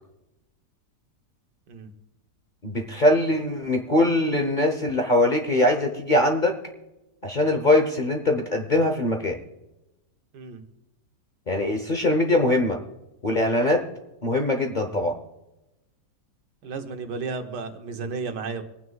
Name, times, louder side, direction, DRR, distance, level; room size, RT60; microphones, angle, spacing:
voice 1, 2.6-6.6 7.2-9.4 11.5-12.8 13.2-13.9 14.2-15.2, left 1 dB, 40° left, 4 dB, 0.8 m, -22 dB
voice 2, 16.6-18.6, right 4 dB, 85° right, 6 dB, 1.6 m, -33 dB
26.0 x 9.4 x 2.3 m, 0.99 s
omnidirectional pair, 1.8 m